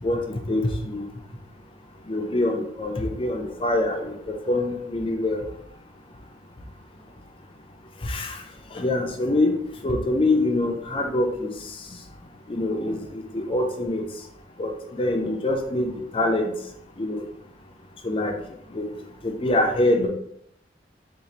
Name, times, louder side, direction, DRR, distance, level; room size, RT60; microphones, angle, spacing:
voice 1, 0.0-1.0 2.1-5.4 8.0-8.3 8.7-9.5 9.8-11.5 12.5-14.0 14.6-16.5 17.0-17.2 18.0-18.3 18.7-18.9 19.2-20.1, left 1 dB, 30° left, 3 dB, 0.4 m, -24 dB
3.8 x 2.4 x 2.9 m, 0.71 s
head